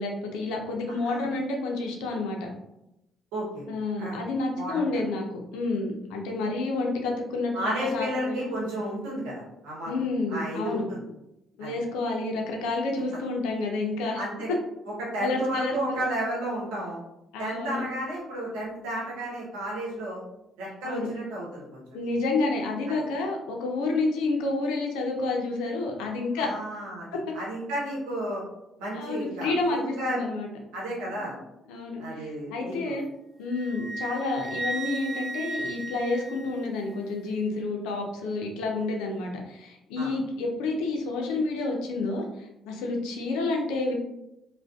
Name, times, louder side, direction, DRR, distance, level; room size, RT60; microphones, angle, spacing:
voice 1, 0.0-2.4 3.7-8.4 9.9-10.8 11.6-14.2 15.2-16.0 17.3-17.8 20.8-21.1 21.9-26.5 28.9-30.5 31.2-31.3 31.7-33.1 33.4-43.9, left 3 dB, 85° left, 1 dB, 0.5 m, -29 dB
voice 2, 3.3-3.7 4.0-4.2 4.5-4.8 7.5-9.9 10.3-11.0 11.6-11.8 14.1-14.5 15.0-17.0 17.4-20.2 20.6-22.0 22.9-23.0 26.3-27.1 27.3-28.4 28.8-30.2 30.7-31.3 32.0-32.9 40.0-40.1, right 1 dB, 90° right, -5 dB, 0.8 m, -32 dB
Wind instrument woodwind instrument, 33.5-37.0, right 2 dB, 40° right, 0.3 m, -35 dB
2.5 x 2.1 x 2.3 m, 0.88 s
supercardioid pair, 65°, 0 cm